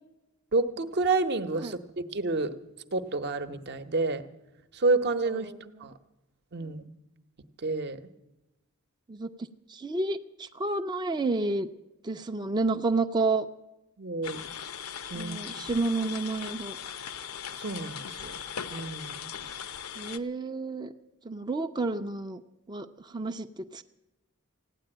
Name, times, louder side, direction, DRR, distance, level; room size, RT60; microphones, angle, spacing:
voice 1, 0.5-2.5 2.9-4.2 4.7-5.5 5.8-5.9 6.5-6.9 7.6-8.0 14.0-14.4 15.1-15.4 17.6-18.3 18.7-19.3, right 3 dB, 50° right, 9 dB, 0.9 m, -29 dB
voice 2, 5.4-5.9 6.6-6.8 9.1-9.3 9.7-11.7 12.0-13.5 15.1-16.8 20.0-20.9 21.2-22.4 22.7-23.8, right 3 dB, 20° right, 6 dB, 0.5 m, -30 dB
sound 1, 14.2-20.2, left 8 dB, 75° left, 0.8 m, -39 dB
16.0 x 9.9 x 8.8 m, 0.96 s
head